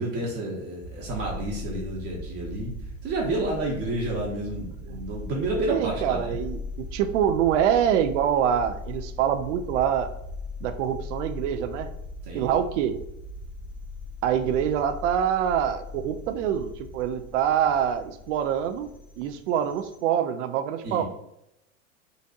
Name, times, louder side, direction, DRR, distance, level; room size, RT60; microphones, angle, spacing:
voice 1, 0.0-2.7 3.0-6.4 12.2-12.6 20.8-21.0, right 2 dB, 35° right, -3 dB, 0.9 m, -30 dB
sound 1, 0.8-20.0, left 2 dB, 35° left, 0.7 m, -39 dB
voice 2, 5.7-10.1 10.6-11.9 12.3-12.9 14.2-18.9 19.2-21.0, right 9 dB, 60° right, 10 dB, 0.5 m, -25 dB
3.9 x 2.5 x 2.4 m, 0.82 s
hypercardioid pair, 95°, 41 cm